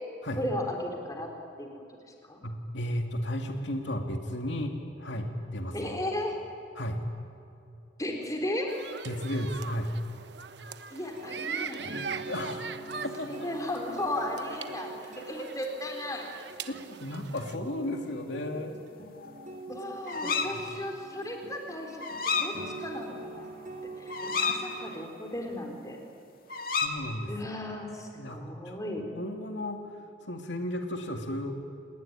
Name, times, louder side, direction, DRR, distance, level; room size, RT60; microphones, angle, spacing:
voice 1, 0.4-1.3 1.6-1.7 2.3-2.4 5.7-6.4 8.0-8.8 10.9-11.9 13.3-16.3 19.7-23.4 24.0-26.0 27.3-29.1, left 1 dB, 20° left, 2 dB, 3.7 m, -35 dB
voice 2, 2.4-5.9 6.8-7.0 9.0-9.9 12.1-13.5 16.7-16.8 17.0-18.8 20.2-20.6 26.8-27.3 28.2-28.4 28.6-28.8 29.2-29.9 30.2-31.5, left 1 dB, 75° left, 4 dB, 2.3 m, -34 dB
sound 1, 8.7-17.6, right 6 dB, 65° right, 1.1 m, -41 dB
sound 2, 11.0-24.9, right 2 dB, 40° right, 2.8 m, -44 dB
sound 3, 19.0-19.6 20.1-20.6 22.0-22.5 22.9-23.0 23.3-24.6 26.5-26.9, left 5 dB, 50° left, 2.2 m, -31 dB
28.5 x 19.0 x 9.9 m, 2.7 s
head